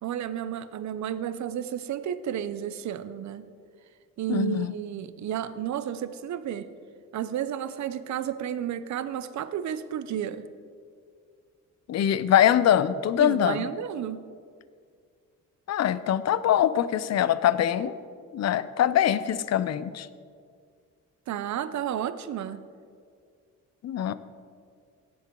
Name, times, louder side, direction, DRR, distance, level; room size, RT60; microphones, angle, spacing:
voice 1, 0.0-3.5 4.2-6.7 7.1-10.5 13.2-14.3 21.3-22.6, right 10 dB, 60° right, 13 dB, 0.6 m, -32 dB
voice 2, 4.3-4.7 11.9-13.6 15.7-17.9 18.3-20.1 23.8-24.1, left 10 dB, 55° left, 15 dB, 0.5 m, -23 dB
17.0 x 7.4 x 3.8 m, 2.1 s
cardioid pair, 115°, 33 cm